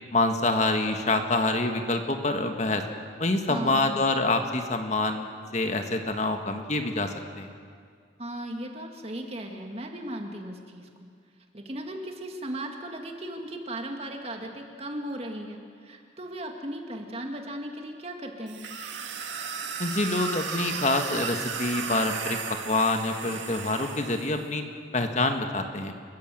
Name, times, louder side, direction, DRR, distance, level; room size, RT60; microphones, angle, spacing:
voice 1, 0.1-2.8 3.2-5.3 5.5-7.5 19.8-24.6 24.9-25.9, left 2 dB, 40° left, 5 dB, 1.5 m, -26 dB
voice 2, 3.5-4.1 8.2-10.9 11.5-18.6, right 1 dB, 35° right, 3 dB, 2.1 m, -36 dB
sound 1, 18.5-24.4, right 6 dB, 90° right, 2.1 m, -35 dB
29.5 x 15.0 x 7.7 m, 2.1 s
head